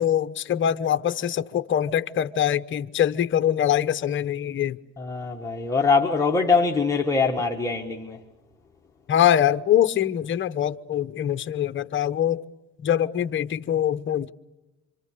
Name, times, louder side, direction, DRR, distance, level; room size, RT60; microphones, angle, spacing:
voice 1, 0.0-4.8 9.1-12.4 12.8-14.3, left 10 dB, 35° left, 1.0 m, -23 dB
voice 2, 5.0-8.2, left 4 dB, 10° left, 1.7 m, -23 dB
27.5 x 25.5 x 6.8 m
cardioid pair, 135°, 35 cm